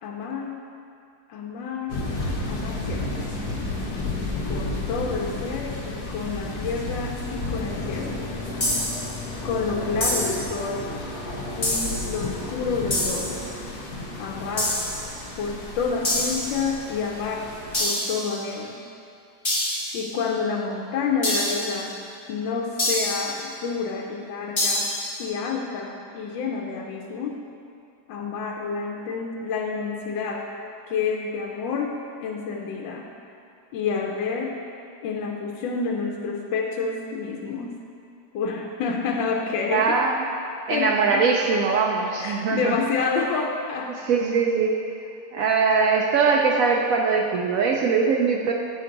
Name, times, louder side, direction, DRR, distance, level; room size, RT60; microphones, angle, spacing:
voice 1, 0.0-0.5 1.3-2.0 2.5-3.4 4.4-8.2 9.4-10.9 11.6-13.5 14.2-14.8 15.4-17.5 17.8-18.9 19.9-22.0 22.3-24.9 25.2-27.4 28.1-30.5 30.9-31.9 32.2-33.1 33.7-34.6 35.0-37.7 38.3-40.0 40.6-41.2 42.2-44.0 45.4-45.5, left 5 dB, 85° left, 1 dB, 1.3 m, -29 dB
sound 1, 1.9-17.8, left 2 dB, 65° left, 1.3 m, -32 dB
sound 2, 8.6-9.1 10.0-10.5 11.6-12.1 12.9-13.4 14.6-15.1 16.0-16.6 17.7-18.3 19.4-20.0 21.2-21.8 22.8-23.3 24.6-25.1, left 1 dB, 20° left, 0.9 m, -26 dB
voice 2, 39.7-40.2 40.7-42.8 44.0-44.8 45.3-48.5, right 5 dB, 80° right, 0 dB, 0.7 m, -21 dB
8.4 x 4.5 x 3.8 m, 2.5 s
omnidirectional pair, 2.0 m